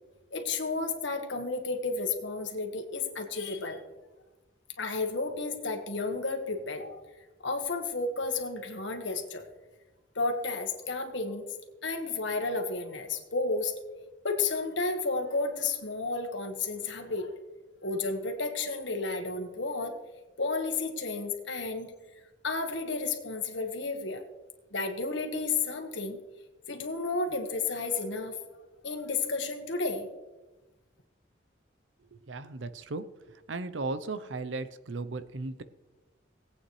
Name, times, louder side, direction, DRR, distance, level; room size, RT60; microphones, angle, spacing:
voice 1, 0.3-3.8 4.8-7.0 7.4-9.5 10.1-11.4 11.8-13.7 14.2-17.3 17.8-20.0 20.4-21.9 22.4-24.2 24.7-26.2 26.7-28.4 28.8-30.1, left 3 dB, 80° left, 5 dB, 1.5 m, -32 dB
voice 2, 32.1-33.0 33.5-35.6, right 3 dB, 85° right, 12 dB, 0.7 m, -36 dB
18.5 x 8.6 x 3.2 m, 1.1 s
head